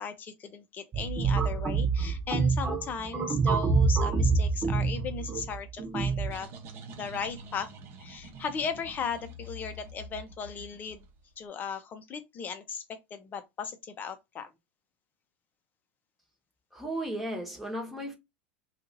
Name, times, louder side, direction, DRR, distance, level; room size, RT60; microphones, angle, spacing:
voice 1, 0.0-6.5 6.9-7.7 8.0-11.0 11.4-14.5, left 6 dB, 30° left, 0.7 m, -37 dB
sound 1, 0.9-6.3, right 4 dB, 25° right, 0.5 m, -27 dB
sound 2, 5.8-11.3, right 1 dB, 45° right, 0.9 m, -46 dB
voice 2, 16.7-18.1, right 1 dB, ahead, 1.1 m, -35 dB
2.8 x 2.5 x 3.8 m
supercardioid pair, 120°, 6 cm